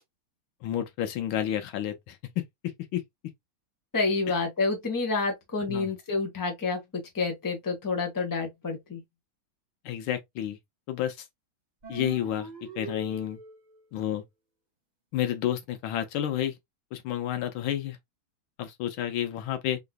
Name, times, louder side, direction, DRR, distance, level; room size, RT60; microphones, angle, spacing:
voice 1, 0.6-2.2 2.9-3.0 5.7-5.9 9.8-10.6 10.9-11.2 11.9-13.4 13.9-14.2 15.1-16.5 16.9-18.0 18.6-19.8, left 11 dB, 85° left, 1.6 m, -30 dB
voice 2, 3.9-9.0, left 3 dB, 15° left, 0.8 m, -29 dB
sound 1, 11.8-13.8, right 4 dB, 50° right, 0.5 m, -41 dB
3.8 x 3.0 x 2.3 m
omnidirectional pair, 2.2 m